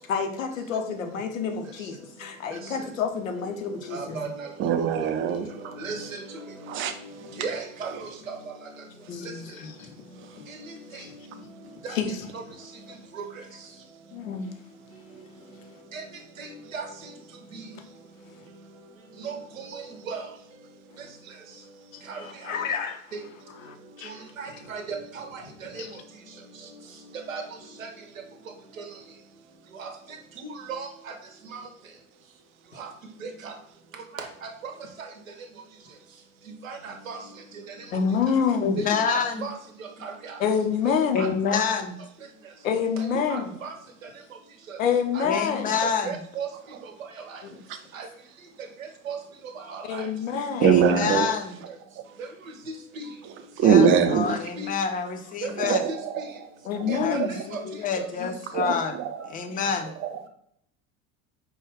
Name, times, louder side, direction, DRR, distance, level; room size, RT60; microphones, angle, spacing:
voice 1, 0.1-4.2 9.1-9.3 9.5-10.0 10.9-11.1 11.9-12.1 14.1-14.5 21.9-23.0 23.7-24.1 25.8-25.9 37.9-38.8 40.4-41.3 42.6-43.5 44.8-45.7 49.8-50.7 56.6-57.3 58.2-58.3, left 6 dB, 75° left, 5 dB, 0.7 m, -28 dB
voice 2, 2.5-2.9 3.9-4.5 5.7-6.2 7.3-8.4 10.9-11.0 11.8-12.0 12.3-12.4 13.2-13.3 15.9-16.0 16.4-16.9 17.5-17.6 19.2-20.2 22.1-22.2 23.1-23.2 24.1-25.8 27.3-27.4 27.8-27.9 29.8-29.9 30.7-31.1 31.5-31.6 32.8-32.9 33.2-33.5 34.1-34.5 36.6-37.2 38.8-39.6 40.0-40.3 40.9-41.7 43.0-43.7 44.7-44.8 45.1-45.3 45.8-46.5 47.9-48.1 49.1-49.2 49.7-50.1 50.8-50.9 51.2-51.3 53.0-53.1 53.8-53.9 54.6-54.7 55.4-56.0 56.9-57.2 57.5-57.6, right 5 dB, 85° right, 4 dB, 0.7 m, -35 dB
voice 3, 4.6-5.8 6.7-6.9 7.9-8.0 45.8-45.9 46.7-46.8 47.7-47.8 50.6-51.3 53.6-54.4 55.6-56.5 56.7-57.3 58.5-59.3 60.0-60.2, right 7 dB, 30° right, 8 dB, 0.5 m, -23 dB
voice 4, 9.1-9.7 38.6-39.5 41.1-42.0 45.2-46.2 50.6-51.6 53.6-55.8 57.0-58.9 59.3-59.9, left 6 dB, 20° left, 7 dB, 0.4 m, -28 dB
4.7 x 2.3 x 3.3 m, 0.68 s
figure-of-eight pair, 75°, 39 cm